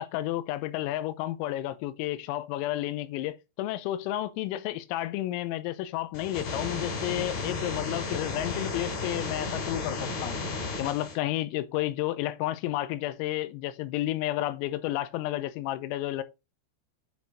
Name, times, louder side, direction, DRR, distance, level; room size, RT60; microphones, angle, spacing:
voice 1, 0.0-10.4 10.8-16.2, left 14 dB, 90° left, 3.4 m, -31 dB
sound 1, 6.1-11.1, left 3 dB, 55° left, 4.6 m, -33 dB
9.5 x 4.6 x 3.5 m
omnidirectional pair, 5.9 m